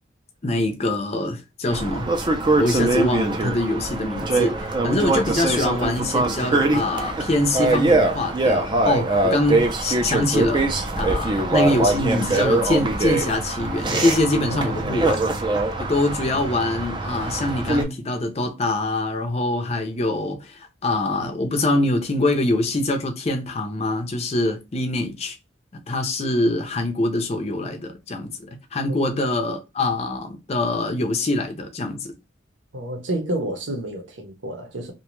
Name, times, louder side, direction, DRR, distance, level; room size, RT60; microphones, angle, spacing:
voice 1, 0.4-2.1 2.6-15.2 15.8-25.4 25.9-32.1, left 2 dB, 35° left, 0.5 m, -24 dB
sound 1, 1.7-17.8, right 2 dB, 25° right, 0.4 m, -23 dB
voice 2, 14.5-15.3 28.9-29.2 32.7-34.9, right 1 dB, 75° right, 0.8 m, -30 dB
2.6 x 2.2 x 3.0 m
head